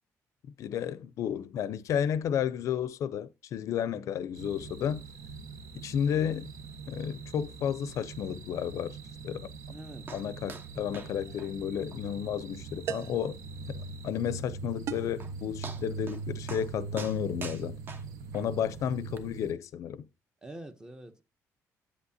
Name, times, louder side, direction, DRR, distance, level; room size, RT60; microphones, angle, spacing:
voice 1, 0.6-5.0 5.8-6.5 6.9-9.0 9.2-9.5 10.1-13.4 13.7-17.8 18.3-20.1, left 9 dB, 60° left, 0.5 m, -32 dB
sound 1, 4.3-19.5, right 4 dB, 70° right, 1.1 m, -42 dB
voice 2, 9.7-10.2 16.0-16.2 20.4-21.2, right 1 dB, 10° right, 0.7 m, -46 dB
sound 2, 10.1-10.2 10.5-10.7 10.9-11.1 11.4-11.5 11.9-12.0 12.4-12.5 13.0-13.1 14.8-14.9 15.2-15.3 15.6-16.2 16.5-16.7 17.0-18.4 19.2-19.3, right 4 dB, 35° right, 1.0 m, -43 dB
sound 3, 11.2-11.5 12.9-13.3 14.9-15.2, right 9 dB, 55° right, 0.3 m, -37 dB
8.5 x 8.1 x 2.7 m
cardioid pair, 155°, 6 cm